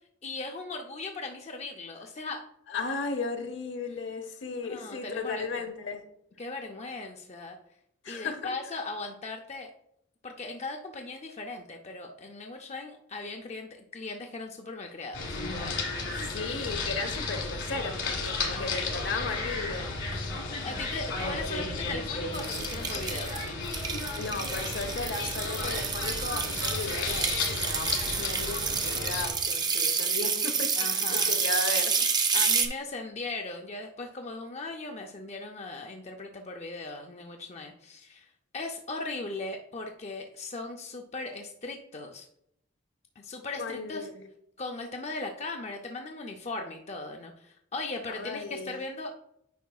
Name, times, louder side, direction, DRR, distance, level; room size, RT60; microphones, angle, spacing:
voice 1, 0.2-2.5 4.6-5.6 6.4-7.6 8.1-9.7 10.2-15.8 17.7-18.1 18.5-18.9 20.1-23.6 30.7-31.4 32.3-42.3 43.2-44.1 44.6-49.1, left 3 dB, 35° left, 3 dB, 0.5 m, -38 dB
voice 2, 2.7-6.1 8.0-8.5 16.2-19.9 23.8-30.8 31.1-31.9 32.3-32.5 43.5-44.2 48.1-48.7, left 3 dB, 65° left, 6 dB, 0.9 m, -35 dB
sound 1, 15.1-29.3, left 3 dB, 90° left, 1.6 m, -33 dB
sound 2, 22.3-32.7, right 5 dB, 20° right, 0.6 m, -29 dB
9.2 x 5.1 x 2.3 m, 0.74 s
head